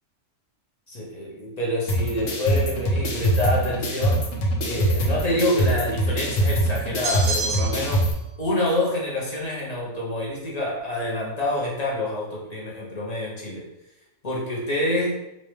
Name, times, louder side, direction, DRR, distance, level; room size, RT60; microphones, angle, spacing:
voice 1, 0.9-4.3 4.6-8.1 8.4-13.6 14.2-15.2, left 1 dB, 40° left, -4 dB, 0.6 m, -27 dB
sound 1, 1.9-8.1, right 1 dB, 70° left, 1.1 m, -24 dB
sound 2, 7.0-8.0, right 2 dB, 45° right, 0.8 m, -28 dB
4.0 x 2.2 x 3.2 m, 0.89 s
omnidirectional pair, 1.4 m